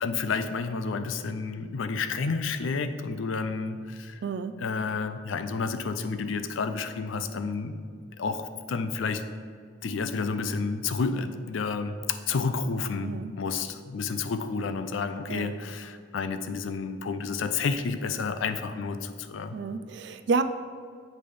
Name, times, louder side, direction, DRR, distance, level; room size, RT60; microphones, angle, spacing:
voice 1, 0.0-4.2 4.6-7.8 8.2-9.2 9.8-19.6, left 4 dB, 75° left, 9 dB, 0.4 m, -30 dB
voice 2, 4.2-4.6 13.0-13.3 15.3-15.6 19.5-20.4, right 4 dB, 60° right, 9 dB, 0.3 m, -30 dB
7.6 x 3.3 x 5.3 m, 2.1 s
head